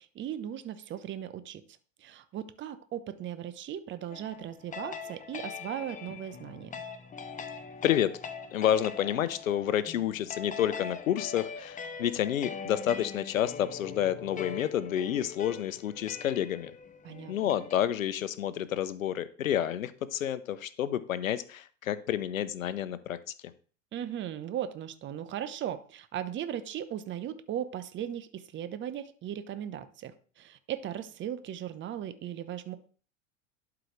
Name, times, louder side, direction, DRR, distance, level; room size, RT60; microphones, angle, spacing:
voice 1, 0.0-1.6 2.0-6.8 17.0-17.3 23.9-32.8, right 10 dB, 30° right, 12 dB, 0.8 m, -37 dB
sound 1, 4.1-17.8, left 6 dB, 20° left, 0.9 m, -42 dB
voice 2, 8.5-16.7 17.3-23.2, left 10 dB, 85° left, 15 dB, 0.8 m, -29 dB
11.5 x 4.9 x 3.2 m, 0.41 s
hypercardioid pair, 95°, 39 cm